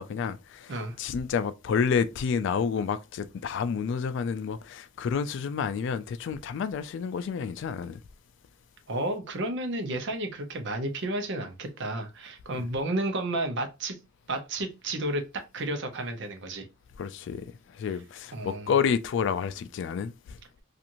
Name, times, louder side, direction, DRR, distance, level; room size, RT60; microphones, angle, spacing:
voice 1, 0.0-8.0 12.6-12.7 17.0-20.4, left 6 dB, 60° left, 0.3 m, -29 dB
voice 2, 8.9-14.0 14.3-15.2 15.5-16.7 18.3-18.7, right 1 dB, 65° right, 0.7 m, -32 dB
2.9 x 2.5 x 2.5 m
head